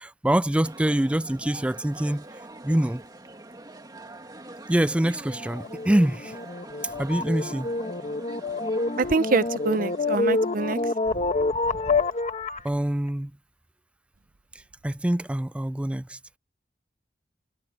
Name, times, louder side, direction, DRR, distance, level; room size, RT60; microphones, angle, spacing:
voice 1, 0.0-2.3 2.6-3.0 4.7-6.4 6.8-7.7 12.6-13.3 14.8-16.2, right 1 dB, 5° right, 0.3 m, -25 dB
sound 1, 0.6-11.0, right 2 dB, 20° right, 2.2 m, -44 dB
sound 2, 5.4-12.7, left 3 dB, 40° left, 1.3 m, -27 dB
voice 2, 9.0-10.8, right 3 dB, 50° right, 0.7 m, -25 dB
head